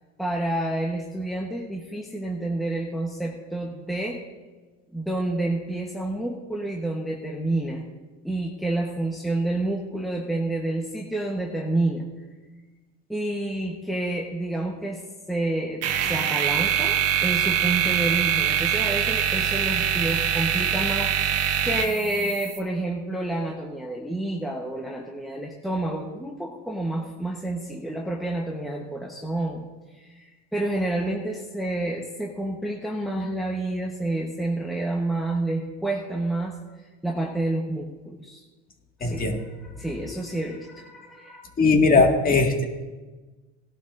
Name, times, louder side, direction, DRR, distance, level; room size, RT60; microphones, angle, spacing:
voice 1, 0.2-4.2 4.9-7.9 8.2-12.0 13.1-29.6 29.9-36.6 37.0-38.4 39.0-39.3 39.6-41.5 42.0-42.1, right 2 dB, ahead, -1 dB, 1.1 m, -29 dB
sound 1, 15.8-22.6, right 9 dB, 50° right, 1.3 m, -24 dB
voice 2, 39.0-39.4 41.6-42.6, left 3 dB, 25° left, 2 dB, 1.9 m, -19 dB
18.0 x 11.5 x 2.6 m, 1.3 s
supercardioid pair, 120°, 33 cm